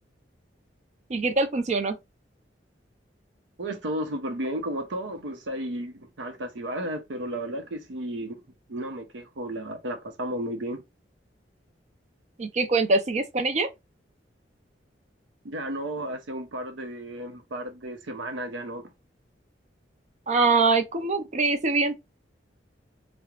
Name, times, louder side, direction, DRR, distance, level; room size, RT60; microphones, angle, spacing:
voice 1, 1.1-2.0 12.4-13.7 20.3-22.0, right 3 dB, 40° right, 0.4 m, -23 dB
voice 2, 3.6-8.4 8.7-10.8 15.4-18.8, right 1 dB, 80° right, 0.6 m, -33 dB
2.4 x 2.0 x 2.9 m
head